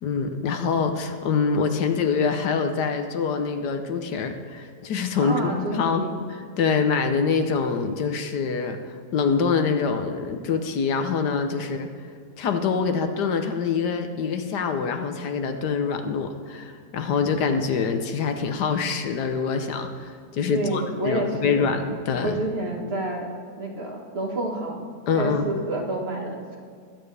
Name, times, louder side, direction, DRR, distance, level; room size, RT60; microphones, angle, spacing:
voice 1, 0.0-11.9 12.4-22.4 25.1-25.5, left 5 dB, 80° left, 6 dB, 1.5 m, -25 dB
voice 2, 5.2-6.1 20.5-21.7 22.2-23.3 23.6-24.9 25.2-26.6, right 2 dB, 40° right, 0 dB, 1.8 m, -29 dB
21.0 x 9.1 x 3.4 m, 2.1 s
omnidirectional pair, 1.8 m